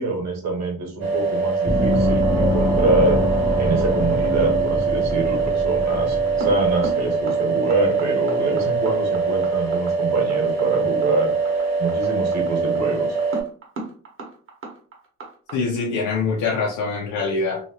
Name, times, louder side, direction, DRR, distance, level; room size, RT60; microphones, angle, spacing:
voice 1, 0.0-3.2 3.6-11.3 11.8-13.2, right 3 dB, 65° right, 1 dB, 1.4 m, -25 dB
sound 1, 1.0-13.4, right 5 dB, 85° right, 0.9 m, -23 dB
Gong, 1.7-6.9, left 1 dB, 15° right, 0.7 m, -24 dB
sound 2, 1.9-15.5, right 3 dB, 45° right, 1.3 m, -38 dB
voice 2, 15.5-17.6, left 4 dB, 80° left, -3 dB, 0.7 m, -24 dB
2.8 x 2.7 x 2.9 m, 0.43 s
cardioid pair, 90°, 30 cm